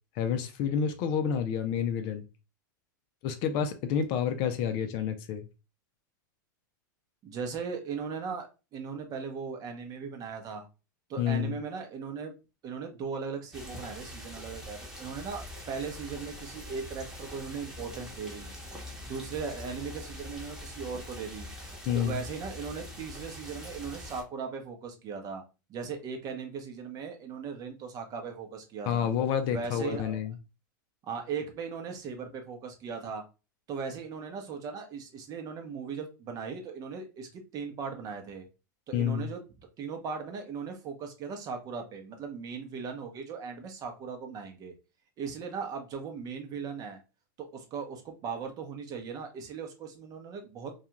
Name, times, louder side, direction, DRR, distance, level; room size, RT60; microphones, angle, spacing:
voice 1, 0.2-2.2 3.2-5.5 11.2-11.5 21.9-22.2 28.9-30.3 38.9-39.3, left 8 dB, 45° left, 0.5 m, -29 dB
voice 2, 7.2-10.7 11.1-12.3 12.6-18.5 19.0-21.5 21.9-25.4 25.7-29.1 29.5-30.2 31.1-33.2 33.7-38.5 38.9-39.4 39.8-44.7 45.2-47.0 47.4-50.7, right 5 dB, 35° right, 0.7 m, -38 dB
sound 1, 13.5-24.2, left 1 dB, 5° right, 1.0 m, -43 dB
2.4 x 2.3 x 2.9 m
hypercardioid pair, 110°, 11 cm